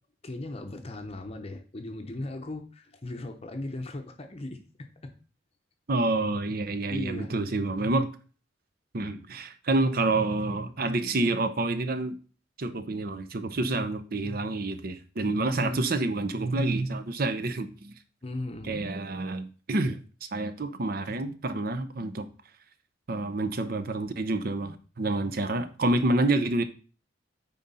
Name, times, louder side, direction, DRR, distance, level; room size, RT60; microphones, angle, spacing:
voice 1, 0.2-5.1 6.9-7.3 15.6-15.8 18.2-18.9, left 2 dB, 30° left, 0.7 m, -37 dB
voice 2, 5.9-8.1 8.9-12.2 12.6-17.9 18.7-20.0 20.3-22.3 23.1-26.6, right 2 dB, 50° right, 0.7 m, -28 dB
9.2 x 3.9 x 4.1 m
head